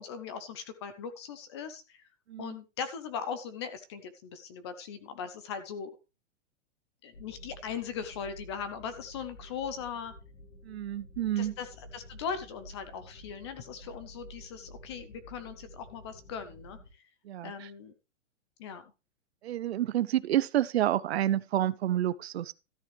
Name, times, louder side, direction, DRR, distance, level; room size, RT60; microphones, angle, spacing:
voice 1, 0.0-2.0 2.4-5.9 7.0-10.1 11.4-17.1 17.4-17.9 18.6-18.8, left 7 dB, 20° left, 0.7 m, -39 dB
sound 1, 7.1-16.9, equal, 85° left, 6.9 m, -51 dB
voice 2, 10.6-11.5 17.2-17.7 19.4-22.5, right 12 dB, 60° right, 0.7 m, -29 dB
13.5 x 9.1 x 3.3 m
hypercardioid pair, 175°, 37 cm